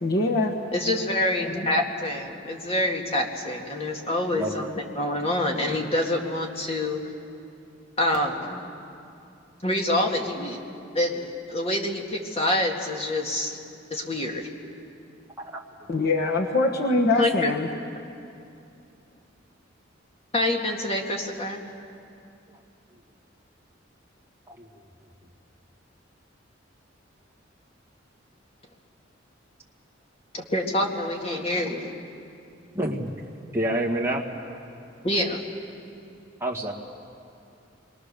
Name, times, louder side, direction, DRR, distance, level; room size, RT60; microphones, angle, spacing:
voice 1, 0.0-0.5 15.9-17.7, left 2 dB, 55° left, 0 dB, 1.4 m, -23 dB
voice 2, 0.7-4.7 5.0-7.0 8.0-8.6 9.6-10.6 10.9-13.6 13.9-14.5 17.2-17.5 20.3-21.6 30.3-32.0 35.0-35.4, left 1 dB, 30° left, 1 dB, 2.1 m, -26 dB
voice 3, 32.7-33.1 33.5-34.2 36.4-36.7, right 1 dB, 15° right, -2 dB, 2.0 m, -27 dB
27.0 x 23.0 x 6.8 m, 2.6 s
head